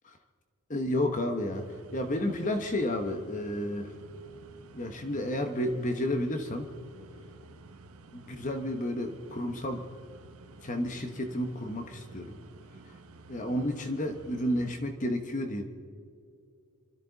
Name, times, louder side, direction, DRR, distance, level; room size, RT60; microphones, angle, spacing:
voice 1, 0.7-3.9 4.7-6.7 8.1-9.8 10.6-12.4 12.8-13.0 13.3-15.7, left 1 dB, 35° left, 6 dB, 1.0 m, -31 dB
sound 1, 1.5-14.8, right 3 dB, 75° right, 1.0 m, -52 dB
27.0 x 13.5 x 4.0 m, 2.4 s
head